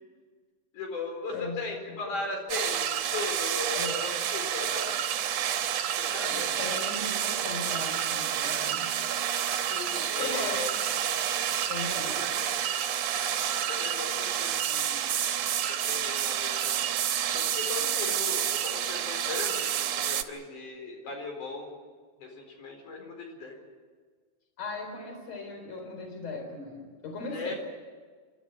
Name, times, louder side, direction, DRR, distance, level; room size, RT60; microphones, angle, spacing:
voice 1, 0.7-4.9 6.0-6.5 9.6-10.7 12.0-12.4 13.7-15.3 15.6-16.9 17.3-21.7 22.2-23.6 27.3-27.5, left 3 dB, 80° left, 2 dB, 6.0 m, -38 dB
sound 1, 2.5-20.2, right 9 dB, 65° right, 2.0 m, -29 dB
voice 2, 6.3-8.9 10.2-10.6 10.9-11.0 11.7-12.2 24.6-27.5, left 3 dB, 55° left, 3 dB, 5.1 m, -38 dB
29.5 x 13.0 x 9.8 m, 1.5 s
omnidirectional pair, 3.5 m